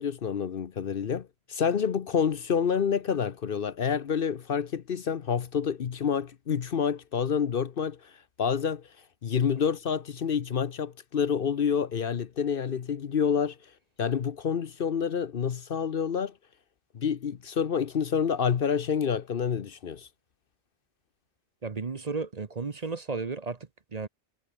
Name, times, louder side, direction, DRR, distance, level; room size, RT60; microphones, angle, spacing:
voice 1, 0.0-8.1 8.4-8.9 9.2-13.6 14.0-16.3 16.9-20.1, left 7 dB, 55° left, 1.0 m, -28 dB
voice 2, 21.6-23.6 23.9-24.1, right 4 dB, 40° right, 1.0 m, -33 dB
omnidirectional pair, 1.2 m